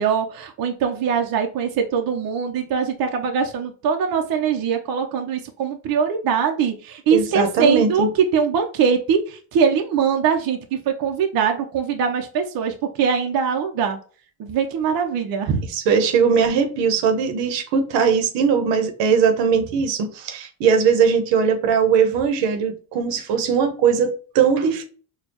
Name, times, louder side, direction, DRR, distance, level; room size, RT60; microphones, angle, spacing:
voice 1, 0.0-8.1 8.3-14.0 14.4-15.7, right 6 dB, 55° right, 4 dB, 0.7 m, -22 dB
voice 2, 7.1-8.1 15.7-24.8, right 6 dB, 80° right, 6 dB, 0.9 m, -19 dB
4.2 x 2.3 x 2.9 m, 0.41 s
supercardioid pair, 85°, 42 cm